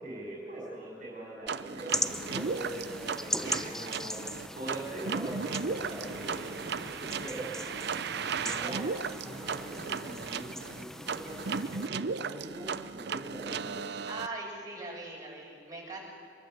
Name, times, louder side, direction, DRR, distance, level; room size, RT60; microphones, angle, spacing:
voice 1, 0.0-7.5 8.3-8.9 9.2-13.8, right 1 dB, 45° right, -3 dB, 5.2 m, -42 dB
sound 1, 1.5-14.3, right 5 dB, 65° right, 0.7 m, -36 dB
sound 2, 1.9-11.9, left 1 dB, 5° left, 0.7 m, -39 dB
voice 2, 3.4-3.7 8.6-8.9 14.1-16.0, right 2 dB, 20° right, -4 dB, 7.7 m, -41 dB
24.0 x 22.0 x 7.9 m, 2.2 s
head